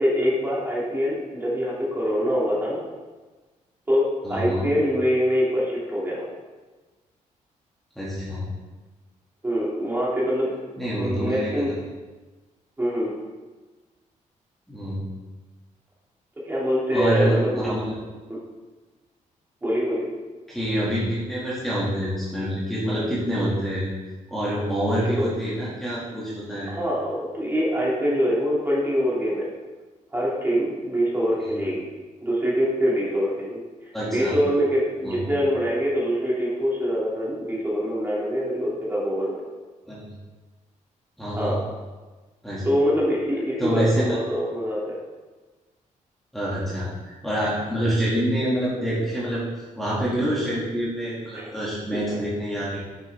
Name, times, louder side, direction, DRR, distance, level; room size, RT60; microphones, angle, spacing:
voice 1, 0.0-2.8 3.9-6.3 9.4-10.5 10.9-11.7 12.8-13.1 16.4-17.7 19.6-20.1 25.2-25.3 26.7-29.5 30.1-31.9 32.2-33.6 34.1-39.4 41.4-41.6 42.6-45.0 51.3-51.5 51.9-52.2, equal, 15° right, -6 dB, 2.4 m, -24 dB
voice 2, 4.2-4.7 8.0-8.5 10.8-11.6 14.7-15.0 16.9-18.0 20.5-23.9 24.3-26.8 33.9-34.3 35.0-35.3 39.9-40.1 41.2-41.6 42.4-42.7 43.6-44.2 46.3-49.5 49.8-52.8, equal, ahead, -10 dB, 2.1 m, -26 dB
9.6 x 6.9 x 3.5 m, 1.3 s
cardioid pair, 145°, 14 cm